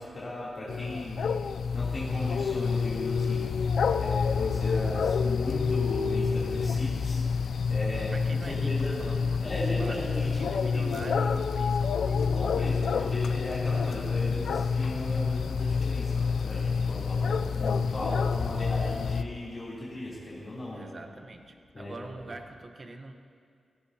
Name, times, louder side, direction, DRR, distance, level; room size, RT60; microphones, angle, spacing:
voice 1, 0.0-1.4 1.7-8.1 8.4-9.0 9.4-11.4 12.1-20.9 21.7-22.0, left 1 dB, 40° left, -9 dB, 3.3 m, -37 dB
sound 1, 0.7-19.2, left 5 dB, 85° left, 0.4 m, -28 dB
voice 2, 7.9-12.2 12.6-12.7 20.7-23.1, right 2 dB, 40° right, 5 dB, 1.1 m, -44 dB
17.0 x 16.5 x 2.9 m, 2.3 s
wide cardioid pair, 95°, 0 cm